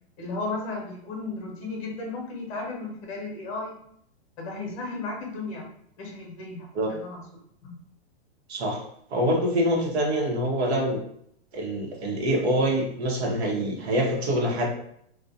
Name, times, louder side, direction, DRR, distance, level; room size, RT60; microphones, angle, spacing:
voice 1, 0.2-3.8 4.4-5.7 6.0-7.2 7.6-7.7, left 3 dB, 30° left, -1 dB, 0.7 m, -34 dB
voice 2, 8.5-8.8 9.1-11.0 11.5-14.7, equal, 75° right, 0 dB, 0.9 m, -25 dB
2.3 x 2.2 x 2.6 m, 0.69 s
hypercardioid pair, 165°, 32 cm